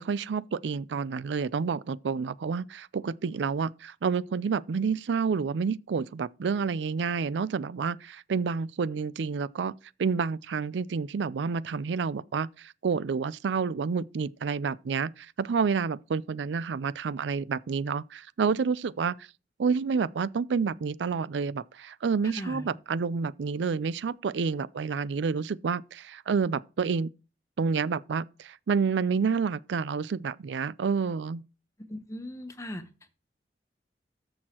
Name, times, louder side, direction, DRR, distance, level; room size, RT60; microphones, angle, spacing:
voice 1, 0.0-9.7 10.0-19.3 19.6-27.1 27.6-31.4, right 5 dB, 90° right, 0.4 m, -29 dB
voice 2, 22.2-22.7 31.9-32.8, left 1 dB, 15° left, 0.9 m, -38 dB
13.5 x 6.3 x 2.9 m
head